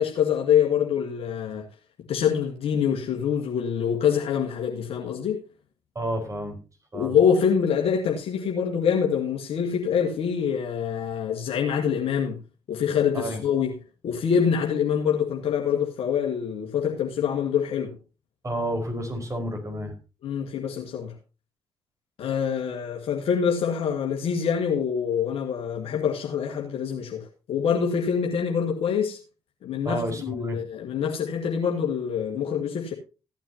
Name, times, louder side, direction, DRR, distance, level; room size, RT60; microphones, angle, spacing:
voice 1, 0.0-1.6 2.1-5.4 6.9-12.4 12.7-13.7 14.0-18.0 20.2-21.1 22.2-29.2 29.6-32.9, left 7 dB, 65° left, 1.8 m, -25 dB
voice 2, 5.9-6.6 6.9-7.2 13.1-13.4 18.4-19.9 29.8-30.6, right 1 dB, 30° right, 5.0 m, -30 dB
16.0 x 9.2 x 2.9 m
hypercardioid pair, 45°, 11 cm